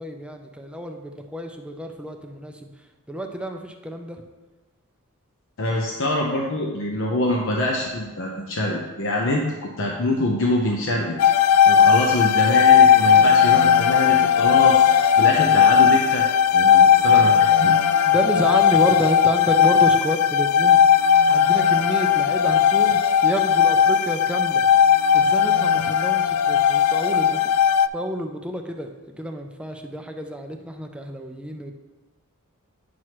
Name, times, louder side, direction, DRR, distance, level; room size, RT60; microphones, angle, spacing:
voice 1, 0.0-2.7 3.1-4.2 18.1-20.8 21.3-24.6 25.1-27.4 27.9-31.7, equal, 5° right, 4 dB, 0.4 m, -29 dB
voice 2, 5.6-11.2 11.7-16.3 16.5-17.7, left 1 dB, 60° left, -1 dB, 0.8 m, -25 dB
sound 1, 11.2-27.9, left 8 dB, 80° left, 0.3 m, -17 dB
9.4 x 6.2 x 3.0 m, 1.2 s
head